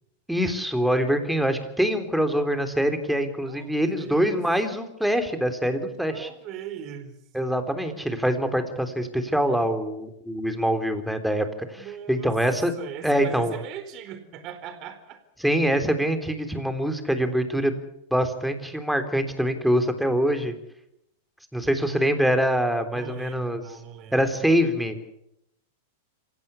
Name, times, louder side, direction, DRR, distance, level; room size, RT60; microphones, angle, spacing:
voice 1, 0.3-6.3 7.3-12.7 13.0-13.5 15.4-17.7 18.1-20.5 21.5-23.6 24.1-25.0, equal, ahead, 7 dB, 3.6 m, -24 dB
voice 2, 3.4-4.5 6.1-7.2 11.8-12.3 12.7-15.2 22.9-24.4, right 8 dB, 45° right, 10 dB, 4.2 m, -39 dB
27.0 x 16.0 x 8.5 m, 0.81 s
hypercardioid pair, 105°, 0 cm